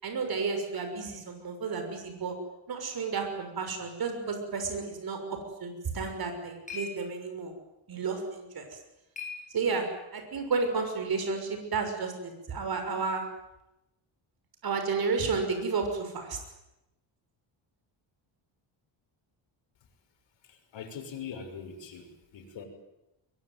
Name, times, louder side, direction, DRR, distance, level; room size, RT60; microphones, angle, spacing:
voice 1, 0.0-2.3 2.7-7.5 7.9-8.6 9.5-9.9 10.1-13.3 14.6-16.4, right 4 dB, 50° right, 5 dB, 6.3 m, -32 dB
sound 1, 5.9-10.1, left 5 dB, 15° left, 7.7 m, -46 dB
voice 2, 20.4-22.6, left 6 dB, 65° left, 5 dB, 6.4 m, -42 dB
23.5 x 22.5 x 9.5 m, 0.92 s
cardioid pair, 125°, 47 cm